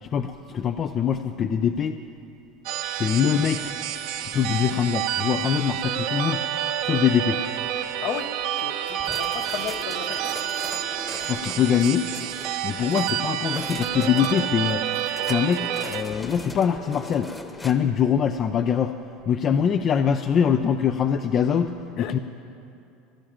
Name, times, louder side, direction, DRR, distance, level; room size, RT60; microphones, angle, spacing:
voice 1, 0.0-2.0 3.0-3.7 4.2-6.4 6.8-7.4 11.3-12.1 12.6-14.8 15.2-17.3 17.6-18.9 19.3-22.2, left 8 dB, 40° left, 8 dB, 0.5 m, -23 dB
sound 1, 2.7-16.0, right 11 dB, 70° right, 1.1 m, -29 dB
voice 2, 8.0-10.4 22.0-22.2, left 9 dB, 60° left, 8 dB, 1.0 m, -34 dB
sound 2, 8.9-17.7, left 2 dB, 15° left, 1.1 m, -40 dB
15.5 x 11.5 x 7.4 m, 2.7 s
supercardioid pair, 105°, 0 cm